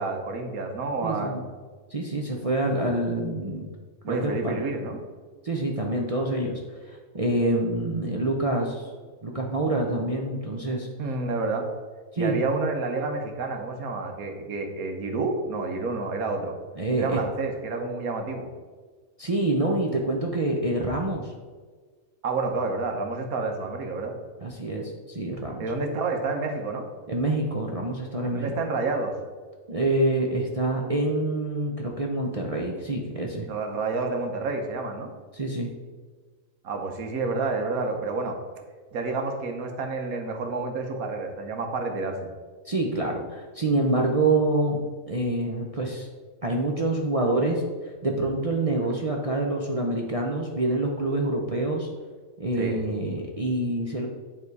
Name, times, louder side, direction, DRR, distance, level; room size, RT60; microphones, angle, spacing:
voice 1, 0.0-1.4 4.0-5.0 11.0-11.6 12.2-16.5 16.9-18.5 22.2-24.1 25.6-26.8 28.2-29.1 33.5-35.1 36.6-38.4 38.9-42.3 52.6-52.8, right 3 dB, 90° right, 3 dB, 1.4 m, -29 dB
voice 2, 1.0-1.4 1.9-3.7 4.1-4.6 5.4-8.8 9.2-10.9 12.1-12.4 16.8-17.2 19.2-21.3 24.4-25.7 27.1-28.5 29.7-33.5 35.3-35.7 42.6-44.8 45.1-46.1 46.4-51.9 52.4-54.1, right 2 dB, 40° right, -1 dB, 0.5 m, -26 dB
9.3 x 3.6 x 4.7 m, 1.4 s
omnidirectional pair, 1.5 m